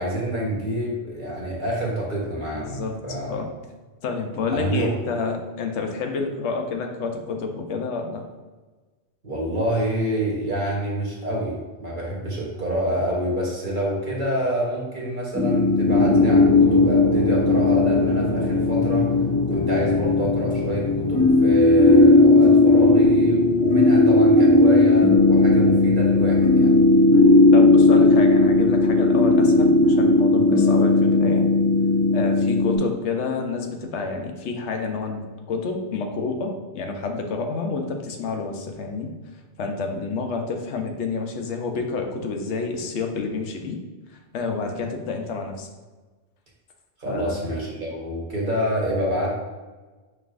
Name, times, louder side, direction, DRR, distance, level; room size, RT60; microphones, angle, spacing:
voice 1, 0.0-3.4 4.5-4.9 9.2-19.1 19.5-26.7 47.0-49.3, right 1 dB, 45° right, -3 dB, 1.1 m, -27 dB
voice 2, 2.5-3.0 3.3-3.5 4.0-8.2 26.8-27.1 27.5-31.5 32.1-39.1 39.6-43.8 44.3-45.7 47.1-47.5, left 4 dB, 90° left, 3 dB, 0.9 m, -29 dB
sound 1, 15.3-32.8, left 2 dB, 10° left, 0.5 m, -16 dB
5.4 x 3.2 x 2.4 m, 1.3 s
omnidirectional pair, 1.2 m